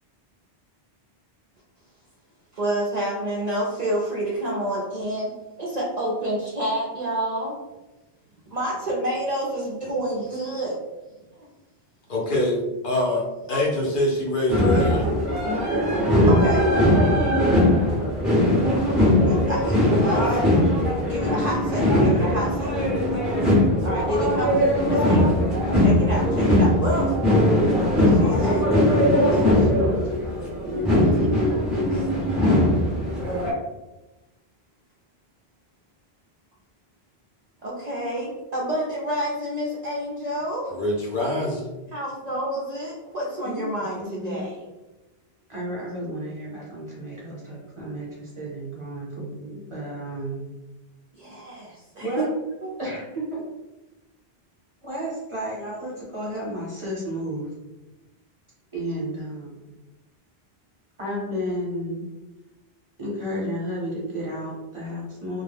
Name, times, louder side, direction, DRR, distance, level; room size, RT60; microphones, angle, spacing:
voice 1, 2.5-5.3 5.6-7.5 8.5-10.8 11.4-11.5 13.5-13.6 16.3-16.7 19.2-20.4 21.0-22.9 23.8-25.4 25.7-27.2 28.1-29.7 30.9-32.0 37.6-40.7 41.9-44.6 51.2-52.2 52.6-52.7, right 1 dB, 50° right, -5 dB, 0.5 m, -29 dB
voice 2, 12.1-13.2 13.5-15.1 40.7-41.7, left 1 dB, 60° left, -3 dB, 0.8 m, -24 dB
sound 1, 14.5-33.5, left 1 dB, ahead, 0.7 m, -20 dB
voice 3, 30.0-30.4 30.6-31.5 43.4-43.6 43.9-44.4 45.5-50.4 52.0-52.3 52.8-53.4 54.8-57.5 58.7-59.7 61.0-62.1 63.0-65.4, equal, 30° right, -6 dB, 0.9 m, -32 dB
2.2 x 2.1 x 3.3 m, 1.1 s
omnidirectional pair, 1.0 m